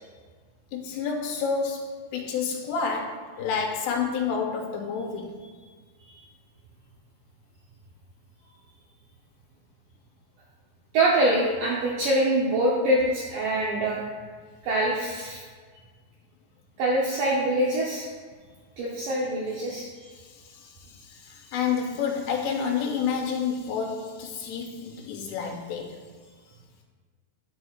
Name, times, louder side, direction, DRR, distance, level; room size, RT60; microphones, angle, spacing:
voice 1, 0.7-5.4 20.6-20.7 21.2-26.0, left 6 dB, 85° left, 2 dB, 2.7 m, -29 dB
voice 2, 10.9-14.0 14.6-15.4 16.8-18.1 18.8-20.1, right 1 dB, 85° right, -4 dB, 1.9 m, -24 dB
10.5 x 7.8 x 2.4 m, 1.5 s
omnidirectional pair, 5.1 m